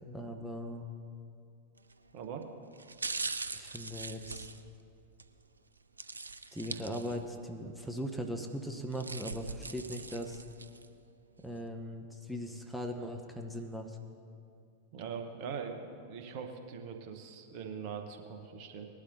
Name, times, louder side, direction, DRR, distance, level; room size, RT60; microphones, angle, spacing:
voice 1, 0.1-0.8 3.5-4.5 6.5-10.4 11.4-14.0, equal, ahead, 2 dB, 0.8 m, -39 dB
sound 1, 1.8-2.1 2.7-5.3 6.0-7.4 7.8-7.9 8.7-10.9 11.4-11.5, right 3 dB, 75° right, 0.4 m, -41 dB
voice 2, 2.1-2.5 14.9-18.9, right 6 dB, 45° right, 5 dB, 1.1 m, -42 dB
19.5 x 11.5 x 2.7 m, 2.5 s
figure-of-eight pair, 90°, 0 cm